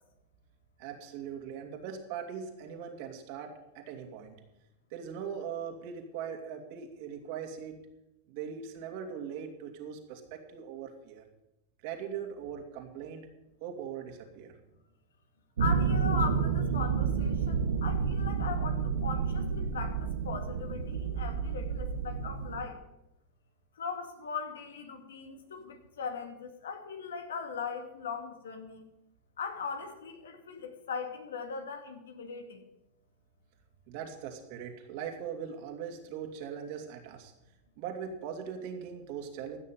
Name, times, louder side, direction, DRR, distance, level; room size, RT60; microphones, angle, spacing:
voice 1, 0.8-4.4 4.9-7.8 8.3-11.2 11.8-13.3 13.6-14.6 33.9-37.3 37.8-39.6, right 7 dB, 60° right, 4 dB, 2.8 m, -40 dB
voice 2, 15.6-22.8 23.8-28.8 29.4-32.6, left 5 dB, 85° left, 6 dB, 2.2 m, -39 dB
sound 1, 15.6-22.6, right 6 dB, 85° right, 1.5 m, -30 dB
15.0 x 6.5 x 9.3 m, 0.92 s
hypercardioid pair, 110°, 0 cm